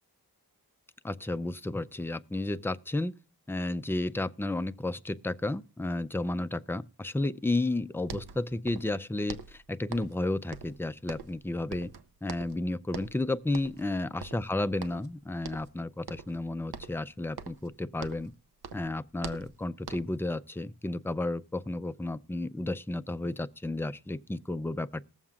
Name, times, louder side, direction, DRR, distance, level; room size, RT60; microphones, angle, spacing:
voice 1, 1.0-3.2 3.5-11.9 12.2-18.3 18.7-25.0, left 2 dB, 5° left, 0.4 m, -32 dB
sound 1, 7.7-7.8 8.0-9.0 9.3-10.2 10.5-11.4 11.7-12.6 12.9-13.2 13.5-13.9 14.2-15.1 15.4-15.8 16.1-16.4 16.7-18.4 18.6-20.2, right 6 dB, 75° right, 0.8 m, -44 dB
20.0 x 7.3 x 2.4 m
wide cardioid pair, 75°, 38 cm